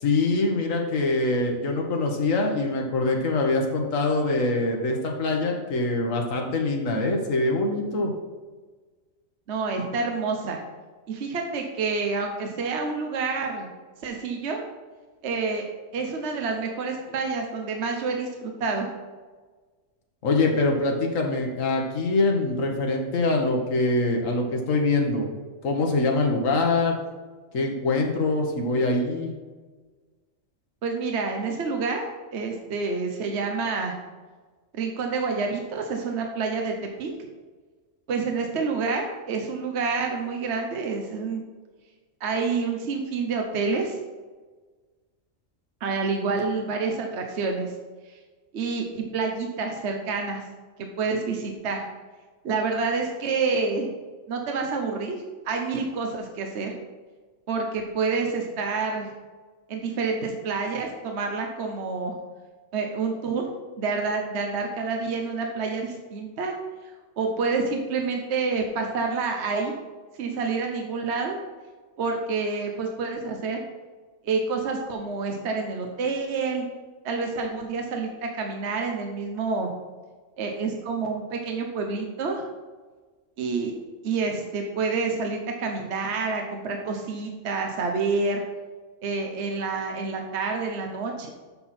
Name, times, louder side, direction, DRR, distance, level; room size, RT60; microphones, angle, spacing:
voice 1, 0.0-8.1 20.2-25.3 25.6-27.0 27.5-29.3, left 2 dB, 85° left, 1 dB, 1.5 m, -24 dB
voice 2, 9.5-10.6 11.1-13.7 14.0-14.6 15.2-15.6 15.9-18.9 30.8-32.0 32.3-33.9 34.7-37.1 38.1-41.4 42.2-44.0 45.8-47.7 48.0-48.2 48.5-50.4 50.8-51.9 52.4-53.9 54.3-56.7 57.5-59.1 59.7-62.1 62.7-63.5 63.8-66.5 66.8-69.7 70.2-71.4 72.0-73.6 74.2-76.6 77.0-79.7 80.4-82.4 83.4-83.7 84.0-88.4 89.0-91.3, right 4 dB, 60° right, 3 dB, 1.1 m, -28 dB
7.7 x 6.0 x 4.2 m, 1.4 s
omnidirectional pair, 1.3 m